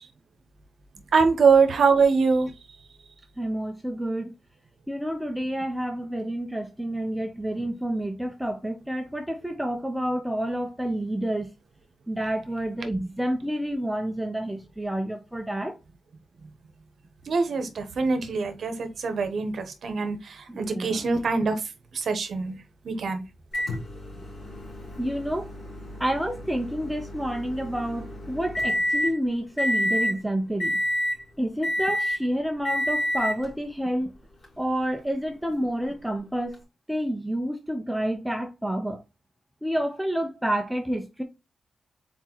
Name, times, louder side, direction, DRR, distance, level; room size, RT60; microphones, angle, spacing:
voice 1, 1.1-2.5 17.3-21.6 21.9-22.6 22.8-23.2, right 5 dB, 60° right, 0.9 m, -23 dB
voice 2, 3.4-4.3 4.9-11.5 12.1-15.7 20.5-21.0 25.0-25.5 26.0-30.7 31.4-34.1 34.6-36.6 36.9-39.0 39.6-41.2, right 1 dB, 5° right, 0.6 m, -29 dB
Microwave oven, 23.5-29.2 29.6-30.2 30.6-31.2 31.6-32.3 32.6-33.5 34.4-34.5 36.5-36.6, equal, 45° left, 3.2 m, -29 dB
4.3 x 4.1 x 2.9 m
wide cardioid pair, 155°, 0 cm